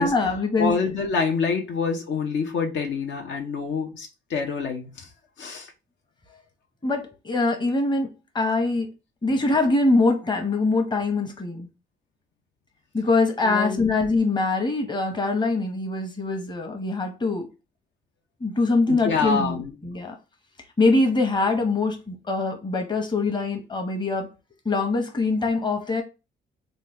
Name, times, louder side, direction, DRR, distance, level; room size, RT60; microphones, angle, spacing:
voice 1, 0.0-0.7 6.8-8.1 8.3-8.9 9.2-11.7 12.9-17.5 18.4-20.1 20.8-24.3 24.6-26.0, left 3 dB, 20° left, 0.9 m, -23 dB
voice 2, 0.6-5.1 5.4-5.7 13.4-13.9 18.9-19.7, left 5 dB, 70° left, 0.8 m, -26 dB
3.1 x 2.3 x 3.4 m
cardioid pair, 90°, 20 cm